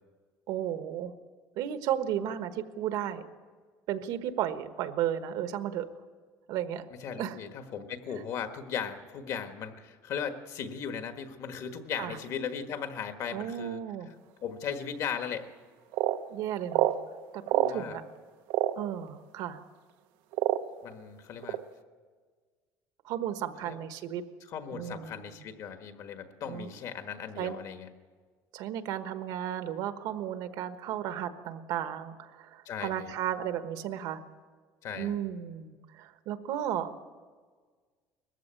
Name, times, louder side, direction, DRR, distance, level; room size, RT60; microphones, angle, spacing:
voice 1, 0.5-1.1 1.6-3.2 3.9-5.9 6.5-6.9 7.2-7.4 8.1-8.2 12.0-12.2 13.3-14.1 16.3-16.9 17.3-18.0 18.7-19.6 23.0-24.2 24.7-25.4 26.5-26.7 27.4-27.6 28.5-34.2 34.9-37.0, right 10 dB, 65° right, 9 dB, 1.3 m, -34 dB
voice 2, 7.0-13.8 14.4-15.5 17.6-18.0 20.8-21.6 23.6-23.8 24.5-27.9 32.6-33.1 34.8-35.2, left 7 dB, 50° left, 7 dB, 1.5 m, -37 dB
sound 1, 15.2-15.3 15.9-16.2 16.7-17.0 17.5-17.7 18.5-18.7 19.6-19.7 20.3-20.8 21.4-21.6, right 15 dB, 85° right, 0.9 m, -26 dB
20.0 x 15.0 x 9.0 m, 1.5 s
cardioid pair, 155°, 7 cm